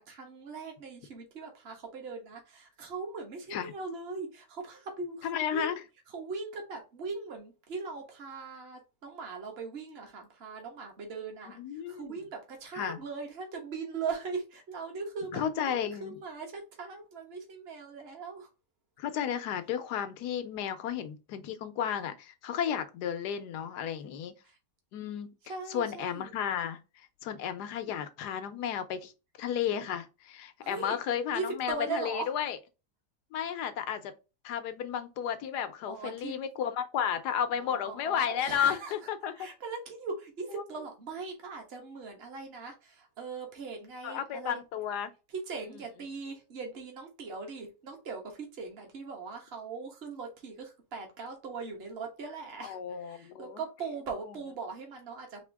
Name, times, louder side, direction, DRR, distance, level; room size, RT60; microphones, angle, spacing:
voice 1, 0.0-5.8 6.1-18.5 24.4-24.6 25.5-26.3 30.6-31.0 31.3-32.3 35.9-36.4 37.5-39.0 39.4-44.6 45.3-55.4, right 4 dB, 40° right, 1.4 m, -40 dB
voice 2, 5.2-5.7 11.6-12.1 12.7-13.0 15.3-16.2 19.0-24.3 24.9-25.3 25.7-26.8 27.2-29.1 29.4-32.6 33.3-34.1 34.4-39.3 40.5-40.6 44.0-45.1 45.6-45.7 52.6-53.6, left 9 dB, 85° left, 1.3 m, -33 dB
4.4 x 2.8 x 3.4 m
omnidirectional pair, 1.7 m